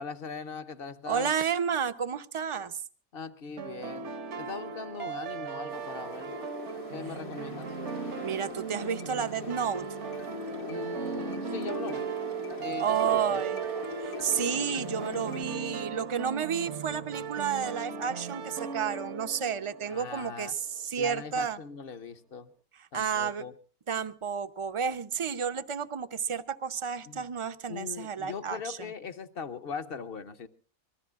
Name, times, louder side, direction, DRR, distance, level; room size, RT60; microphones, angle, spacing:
voice 1, 0.0-1.3 3.1-4.1 4.4-6.4 6.9-7.7 10.7-12.1 12.6-13.4 19.9-20.5 21.0-22.5 22.9-23.5 27.1-27.3 27.7-30.5, left 6 dB, 50° left, 0.9 m, -40 dB
voice 2, 1.1-2.8 8.2-9.8 12.8-13.6 14.0-21.6 22.8-23.4 23.9-28.9, right 7 dB, 35° right, 0.5 m, -31 dB
sound 1, 3.6-20.5, right 7 dB, 60° right, 1.1 m, -37 dB
sound 2, 5.7-15.4, left 7 dB, 85° left, 2.2 m, -43 dB
24.5 x 19.0 x 2.4 m
omnidirectional pair, 1.4 m